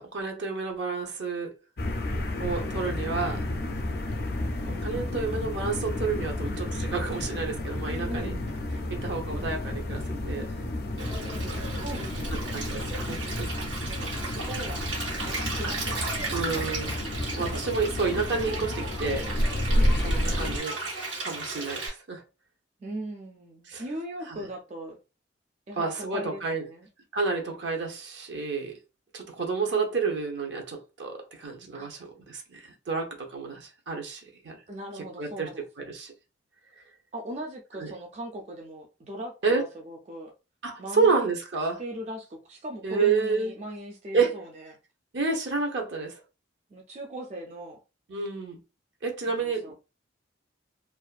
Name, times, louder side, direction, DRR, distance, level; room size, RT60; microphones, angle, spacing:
voice 1, 0.0-1.5 2.4-3.4 4.7-8.3 8.9-10.6 11.4-11.7 12.5-13.5 16.3-17.0 17.3-19.3 20.0-20.9 21.2-22.2 23.7-23.8 24.3-24.5 25.8-26.6 27.1-28.7 29.1-34.6 35.2-35.5 35.8-36.1 37.8-37.9 39.4-39.7 40.6-41.8 42.8-43.5 44.1-44.4 45.1-46.2 48.1-48.6 49.0-49.7, right 4 dB, 70° right, 0.7 m, -30 dB
sound 1, 1.8-20.6, left 1 dB, 55° left, 0.4 m, -31 dB
voice 2, 2.8-3.3 7.9-8.4 11.8-12.7 13.9-16.1 19.7-19.9 22.8-25.0 25.7-26.9 31.7-31.9 34.7-35.9 37.1-40.3 40.8-41.3 41.8-44.8 46.7-47.8 49.3-49.7, right 1 dB, 35° right, 0.4 m, -39 dB
Stream, 11.0-21.9, right 3 dB, 85° right, 1.3 m, -35 dB
2.5 x 2.2 x 2.4 m
head